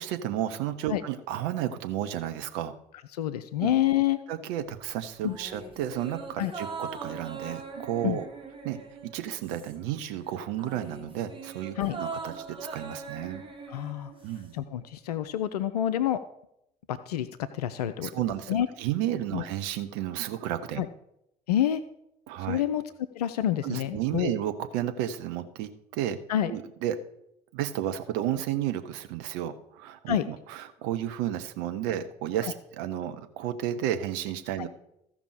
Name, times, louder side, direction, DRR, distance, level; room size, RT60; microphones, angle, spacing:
voice 1, 0.0-2.7 3.6-3.7 4.3-8.3 8.6-8.8 9.1-13.4 14.2-14.5 18.0-20.8 22.3-22.6 23.6-26.2 26.5-27.0 27.5-34.7, right 11 dB, 60° right, 8 dB, 0.8 m, -32 dB
voice 2, 3.1-4.2 5.2-5.4 6.4-6.5 8.0-8.2 11.8-12.0 13.7-14.1 14.5-16.2 16.9-18.1 18.5-18.7 19.3-19.4 20.8-20.9 21.5-21.8 22.5-22.8 23.1-24.3 26.3-26.5 30.1-30.3 32.4-32.5 34.6-34.7, left 11 dB, 75° left, 12 dB, 0.4 m, -27 dB
sound 1, 5.2-10.0 10.3-14.6 14.9-15.0, right 4 dB, 25° right, 2.0 m, -41 dB
15.0 x 5.3 x 4.9 m, 0.80 s
figure-of-eight pair, 50°, 20 cm